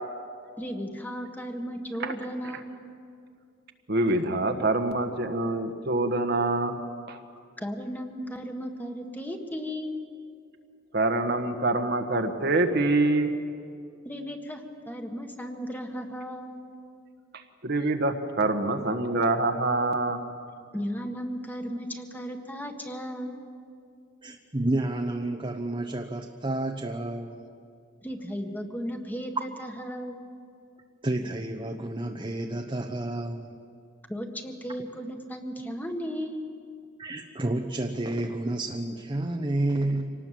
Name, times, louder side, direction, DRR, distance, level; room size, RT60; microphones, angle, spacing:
voice 1, 0.6-2.8 7.6-10.0 14.0-16.6 20.7-23.4 28.0-30.2 34.1-36.5, equal, 10° left, 4 dB, 1.6 m, -35 dB
voice 2, 3.9-6.8 7.1-7.2 10.9-13.3 17.6-20.2, right 2 dB, 55° right, 5 dB, 1.5 m, -25 dB
voice 3, 24.2-27.4 31.0-33.5 37.0-40.1, right 1 dB, 25° right, 3 dB, 1.0 m, -30 dB
26.0 x 19.0 x 7.6 m, 2.3 s
head